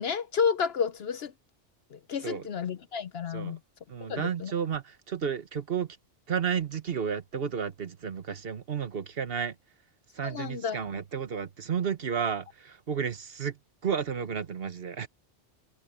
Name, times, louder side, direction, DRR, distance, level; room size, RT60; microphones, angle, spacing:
voice 1, 0.0-1.3 1.9-3.6 4.1-4.5 10.2-10.9, left 6 dB, 65° left, 0.9 m, -31 dB
voice 2, 3.9-6.0 6.3-9.5 10.1-13.6 13.8-15.1, right 7 dB, 55° right, 1.4 m, -32 dB
omnidirectional pair, 1.2 m